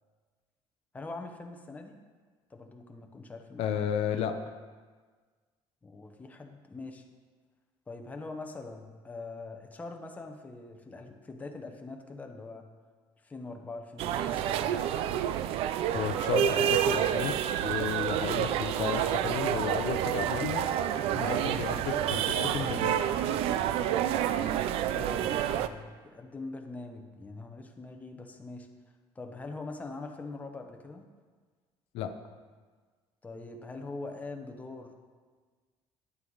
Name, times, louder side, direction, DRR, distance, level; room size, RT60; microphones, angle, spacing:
voice 1, 0.9-2.0 2.5-3.8 5.8-7.0 7.9-12.6 13.2-15.2 21.1-21.4 24.9-28.7 29.1-31.1 33.2-34.9, left 3 dB, 15° left, 3 dB, 0.8 m, -43 dB
voice 2, 3.6-4.4 15.9-17.4 17.6-20.7 21.1-23.0 31.9-32.1, left 8 dB, 75° left, 7 dB, 0.6 m, -33 dB
sound 1, 14.0-25.7, right 10 dB, 75° right, 0.4 m, -29 dB
9.6 x 8.9 x 4.0 m, 1.5 s
cardioid pair, 140°, 10 cm